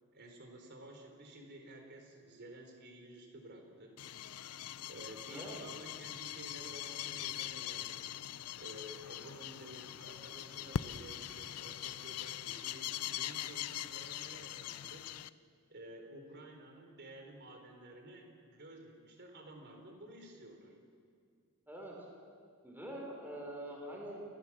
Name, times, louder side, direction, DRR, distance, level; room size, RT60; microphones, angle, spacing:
voice 1, 0.1-4.0 4.9-8.1 8.6-15.1 15.7-20.7, right 1 dB, 50° right, 3 dB, 3.7 m, -52 dB
sound 1, 4.0-15.3, left 11 dB, 80° left, 0.5 m, -42 dB
voice 2, 5.3-5.6 21.7-22.0 22.6-24.2, right 1 dB, 10° right, -1 dB, 4.3 m, -44 dB
29.0 x 15.5 x 7.3 m, 2.3 s
head